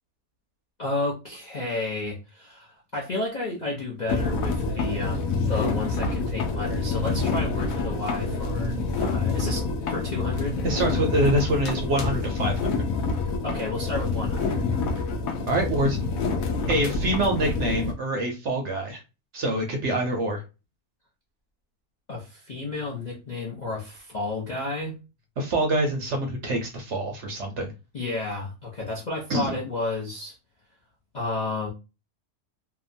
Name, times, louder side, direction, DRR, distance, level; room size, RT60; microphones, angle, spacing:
voice 1, 0.8-10.6 13.4-14.9 22.1-25.0 27.9-30.4 31.1-31.7, left 2 dB, 50° left, 0.5 m, -32 dB
sound 1, 4.1-17.9, left 4 dB, 70° left, 1.0 m, -27 dB
voice 2, 10.6-12.9 15.5-16.0 16.7-19.0 19.3-20.4 25.4-27.7 29.3-29.5, right 1 dB, 60° right, 0.8 m, -25 dB
2.8 x 2.2 x 2.5 m
omnidirectional pair, 1.6 m